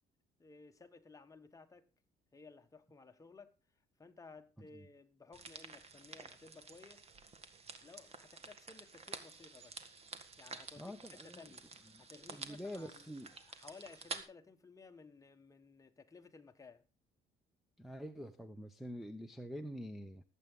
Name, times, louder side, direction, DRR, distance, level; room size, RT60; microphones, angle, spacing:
voice 1, 0.4-1.9 2.3-3.5 4.0-7.1 7.8-9.9 10.4-11.0 11.2-11.7 12.0-16.9, left 4 dB, 20° left, 1.4 m, -57 dB
sound 1, 5.3-14.2, right 4 dB, 35° right, 1.7 m, -50 dB
voice 2, 10.8-11.5 11.9-12.0 12.3-13.3 17.8-20.2, equal, ahead, 0.8 m, -46 dB
20.0 x 8.3 x 3.7 m
cardioid pair, 110°, 17 cm